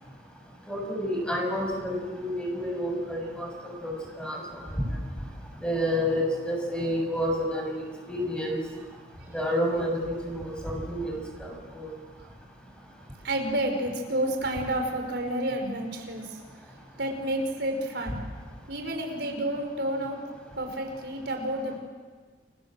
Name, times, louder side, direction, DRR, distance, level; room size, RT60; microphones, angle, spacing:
voice 1, 0.7-4.4 5.6-7.8 8.1-8.6 9.3-11.9, equal, 5° left, 1 dB, 6.8 m, -29 dB
voice 2, 13.2-16.4 17.0-18.2 18.7-20.2 20.6-21.8, right 1 dB, 65° right, 3 dB, 5.1 m, -30 dB
30.0 x 24.5 x 7.8 m, 1.5 s
head